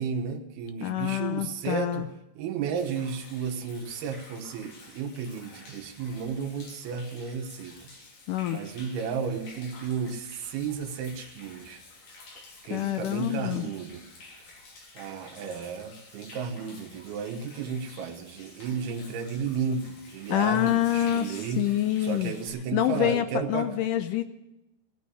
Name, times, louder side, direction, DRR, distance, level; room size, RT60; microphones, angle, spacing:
voice 1, 0.0-2.1 2.4-7.9 8.5-11.8 12.6-14.0 14.9-21.7 22.0-23.7, right 6 dB, 85° right, 4 dB, 3.2 m, -33 dB
voice 2, 0.8-2.0 8.3-8.6 12.7-13.7 20.3-22.3 22.7-24.2, left 12 dB, 80° left, 9 dB, 1.9 m, -26 dB
Human voice / Rain / Stream, 2.8-22.5, left 3 dB, 60° left, 4.6 m, -50 dB
16.5 x 8.8 x 9.9 m, 0.94 s
omnidirectional pair, 4.4 m